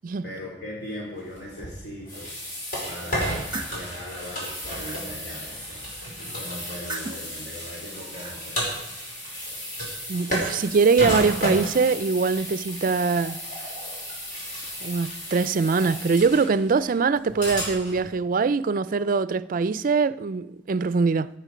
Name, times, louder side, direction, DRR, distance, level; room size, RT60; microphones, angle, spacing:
voice 1, 0.2-2.3 2.8-5.8 6.2-8.6, left 1 dB, 65° left, 3.0 m, -39 dB
sound 1, 1.4-18.1, equal, 50° left, 5.1 m, -33 dB
sound 2, 3.1-3.8 4.4-5.0 6.6-7.3 7.9-8.4, right 2 dB, 25° right, 1.1 m, -38 dB
voice 2, 10.1-13.4 14.8-21.3, right 4 dB, 45° right, 0.4 m, -23 dB
15.0 x 9.0 x 5.1 m
head